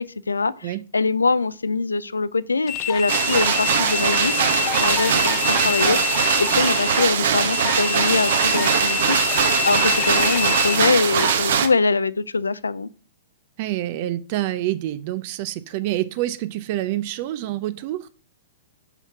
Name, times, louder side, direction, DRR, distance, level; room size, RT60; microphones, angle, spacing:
voice 1, 0.0-4.3 4.7-12.9, left 4 dB, 80° left, 0.4 m, -23 dB
sound 1, 2.7-11.4, left 13 dB, 35° left, 0.6 m, -27 dB
sound 2, 3.1-11.7, right 7 dB, 60° right, 1.0 m, -21 dB
voice 2, 13.6-18.1, right 14 dB, 45° right, 0.4 m, -27 dB
5.8 x 5.7 x 5.8 m
figure-of-eight pair, 110°, 0 cm